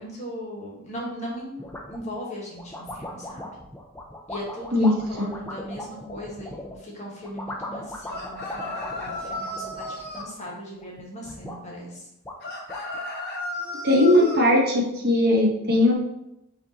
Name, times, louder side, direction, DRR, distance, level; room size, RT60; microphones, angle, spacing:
voice 1, 0.0-1.6 1.9-3.5 4.3-12.1, equal, 30° left, -3 dB, 1.3 m, -38 dB
sound 1, 1.6-2.1 2.6-6.8 7.2-10.5 10.8-11.6 12.0-12.1 12.2-13.1, left 1 dB, 10° left, 0.4 m, -38 dB
voice 2, 4.7-5.3 13.6-15.9, left 1 dB, 45° right, -1 dB, 0.9 m, -20 dB
sound 2, 8.1-10.3 12.4-14.4, left 2 dB, 45° left, 0.7 m, -34 dB
5.1 x 2.6 x 4.0 m, 0.84 s
head